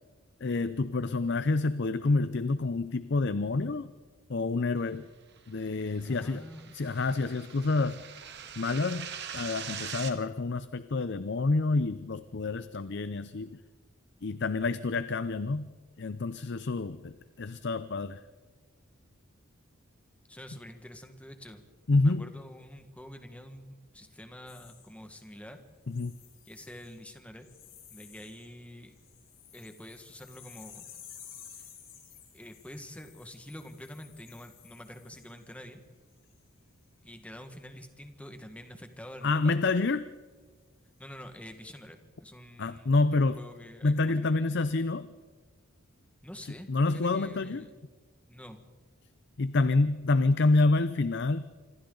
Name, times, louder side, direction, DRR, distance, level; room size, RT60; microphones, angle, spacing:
voice 1, 0.4-3.9 4.3-5.0 5.5-6.4 6.7-8.0 8.6-13.6 14.2-15.7 16.0-18.2 21.9-22.3 25.9-26.2 39.2-40.1 42.6-43.4 43.8-45.1 46.4-47.7 49.4-51.4, left 3 dB, 55° left, 13 dB, 0.6 m, -28 dB
sound 1, 5.7-10.1, right 8 dB, 50° right, 1.8 m, -42 dB
voice 2, 6.0-6.8 20.3-21.6 22.0-25.6 26.4-27.5 27.9-28.9 29.5-30.9 32.3-35.8 37.0-39.6 41.0-44.5 46.2-47.7 48.3-48.7, equal, 5° left, 6 dB, 1.6 m, -47 dB
sound 2, 24.5-25.4 25.9-27.1 27.4-28.5 28.8-35.6 36.1-36.4, left 9 dB, 70° left, 5.7 m, -53 dB
26.5 x 25.5 x 3.9 m, 1.4 s
head